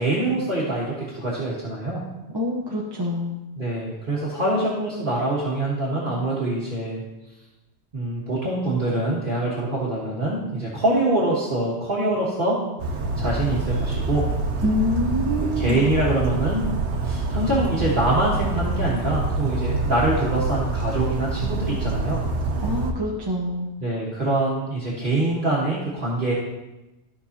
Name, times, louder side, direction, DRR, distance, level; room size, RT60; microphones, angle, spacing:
voice 1, 0.0-2.0 3.6-7.0 7.9-12.6 13.2-14.2 15.6-16.7 17.0-22.2 23.8-26.3, right 2 dB, 50° right, -6 dB, 1.6 m, -24 dB
voice 2, 2.3-3.4 14.6-15.8 22.6-23.7, left 1 dB, 25° right, -3 dB, 0.8 m, -26 dB
Bird vocalization bird call bird song, 12.8-22.9, right 3 dB, 75° right, 1.2 m, -26 dB
14.0 x 5.4 x 2.8 m, 1.0 s
omnidirectional pair, 1.2 m